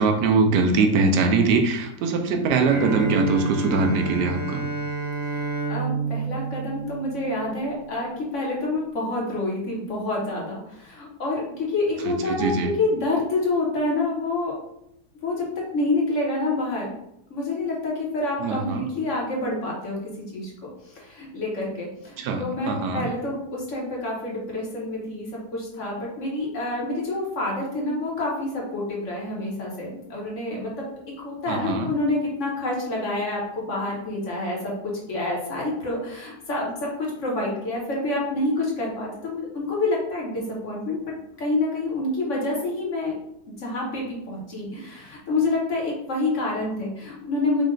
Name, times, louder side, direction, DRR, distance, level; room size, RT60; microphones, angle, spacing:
voice 1, 0.0-4.7 12.0-12.7 18.4-18.9 22.2-23.1 31.5-31.9, right 4 dB, 80° right, 5 dB, 1.2 m, -22 dB
Bowed string instrument, 2.7-7.6, right 4 dB, 40° right, 1.4 m, -29 dB
voice 2, 5.2-14.5 15.2-16.9 17.3-41.0 41.4-43.2 43.6-47.6, left 2 dB, 50° left, -3 dB, 1.3 m, -28 dB
5.3 x 2.4 x 3.8 m, 0.79 s
omnidirectional pair, 1.8 m